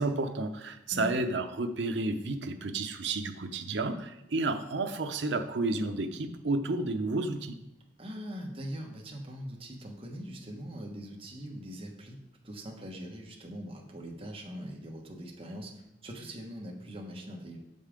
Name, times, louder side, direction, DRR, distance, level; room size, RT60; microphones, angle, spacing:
voice 1, 0.0-7.5, right 2 dB, 70° right, 7 dB, 0.7 m, -31 dB
voice 2, 8.0-12.2 12.4-17.6, equal, 30° right, -1 dB, 1.1 m, -42 dB
6.5 x 5.4 x 5.0 m, 0.91 s
head